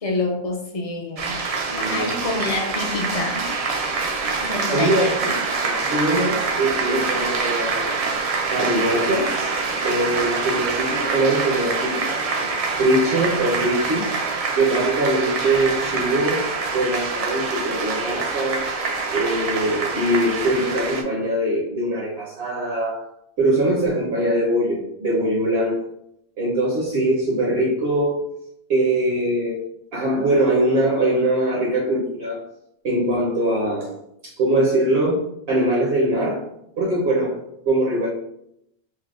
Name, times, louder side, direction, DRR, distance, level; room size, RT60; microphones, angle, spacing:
voice 1, 0.0-1.4 1.8-3.4 4.4-5.1, left 2 dB, 40° left, 1 dB, 0.6 m, -27 dB
sound 1, 1.2-21.0, right 4 dB, 50° right, 0.4 m, -25 dB
voice 2, 1.7-2.1 4.7-5.3 5.6-8.0 8.5-9.4 9.8-12.5 12.8-14.1 14.5-16.5 16.7-18.6 19.1-23.0 23.4-25.8 26.4-28.2 28.7-29.6 29.9-32.4 32.8-33.9 34.2-36.4 36.8-38.1, right 1 dB, 70° right, -4 dB, 1.0 m, -22 dB
5.9 x 2.1 x 2.4 m, 0.76 s
omnidirectional pair, 1.1 m